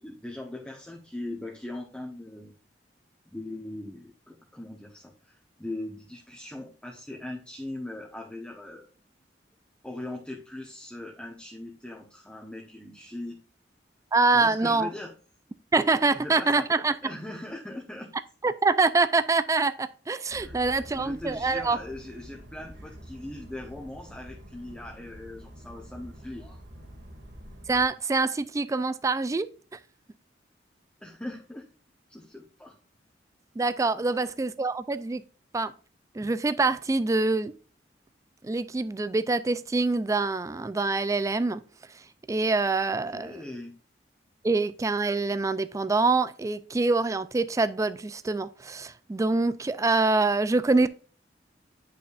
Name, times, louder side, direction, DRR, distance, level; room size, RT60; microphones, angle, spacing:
voice 1, 0.0-2.5 3.3-8.9 9.8-13.4 14.3-15.1 16.1-16.7 17.0-18.1 20.4-26.6 31.0-31.7 32.1-32.7 34.0-34.1 43.1-43.7, left 1 dB, 5° left, 1.0 m, -40 dB
voice 2, 14.1-14.9 15.7-16.9 18.4-21.8 27.7-29.5 33.6-35.2 35.5-35.7 36.1-37.5 38.4-41.6 42.3-43.4 44.4-50.9, right 3 dB, 20° right, 0.3 m, -25 dB
sound 1, 20.3-27.9, equal, 70° right, 2.2 m, -47 dB
8.7 x 5.5 x 2.4 m
head